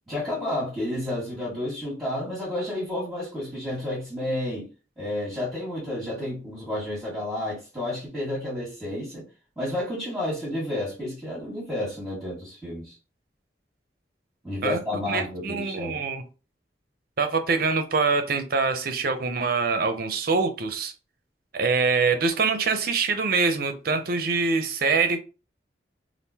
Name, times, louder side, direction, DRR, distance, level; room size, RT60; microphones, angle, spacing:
voice 1, 0.1-4.7 5.0-9.2 9.6-12.9 14.4-16.0, left 1 dB, 5° right, 1.5 m, -31 dB
voice 2, 15.1-16.2 17.2-20.9 21.5-25.2, right 4 dB, 55° right, 0.6 m, -24 dB
3.6 x 2.5 x 2.8 m
head